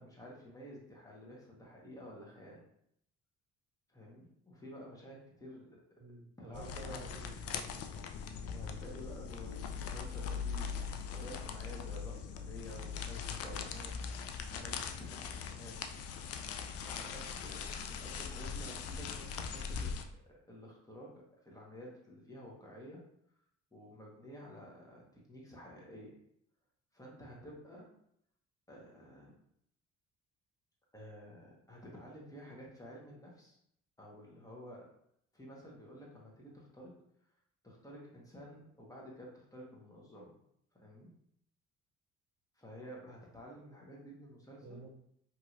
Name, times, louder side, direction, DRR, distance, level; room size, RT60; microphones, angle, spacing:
voice 1, 0.0-2.6 3.9-6.0 6.4-7.0 8.5-10.8 11.1-14.0 14.5-15.9 16.9-20.0 20.3-23.0 23.7-26.2 26.9-27.9 28.7-29.3 30.9-33.6 34.0-34.9 35.3-36.9 37.6-40.3 40.7-41.1 42.5-44.8, equal, 10° left, -4 dB, 1.2 m, -51 dB
voice 2, 6.0-7.9 44.6-44.9, right 2 dB, 25° right, 0 dB, 0.4 m, -50 dB
sound 1, 6.5-20.0, left 6 dB, 45° left, 0.4 m, -41 dB
2.9 x 2.7 x 2.5 m, 0.72 s
hypercardioid pair, 50°, 35 cm